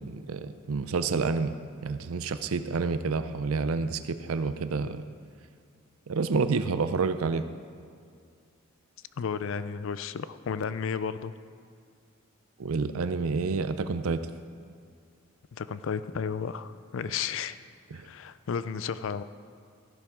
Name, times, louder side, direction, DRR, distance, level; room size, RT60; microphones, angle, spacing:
voice 1, 0.0-1.5 1.8-5.1 6.1-7.4 12.6-14.2 17.9-18.1, right 4 dB, 90° right, 11 dB, 0.5 m, -29 dB
voice 2, 9.2-11.3 15.5-17.6 17.9-19.2, left 6 dB, 65° left, 14 dB, 0.4 m, -33 dB
14.0 x 12.0 x 3.6 m, 2.2 s
head